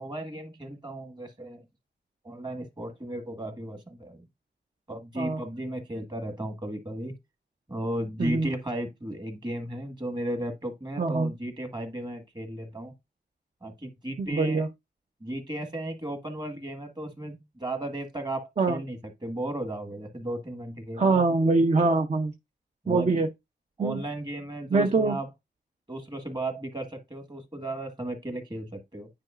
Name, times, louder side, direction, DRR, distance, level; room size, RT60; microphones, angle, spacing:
voice 1, 0.0-1.6 2.2-4.3 4.9-7.1 7.7-12.9 13.6-14.6 15.2-21.2 22.8-23.1 23.8-25.3 25.9-29.1, right 1 dB, 25° right, 1.6 m, -35 dB
voice 2, 8.2-8.5 11.0-11.3 14.2-14.7 18.6-18.8 21.0-22.3 22.9-23.3 23.8-24.0 24.7-25.2, right 3 dB, 40° right, 0.7 m, -23 dB
9.7 x 4.7 x 2.5 m
wide cardioid pair, 95°, 19 cm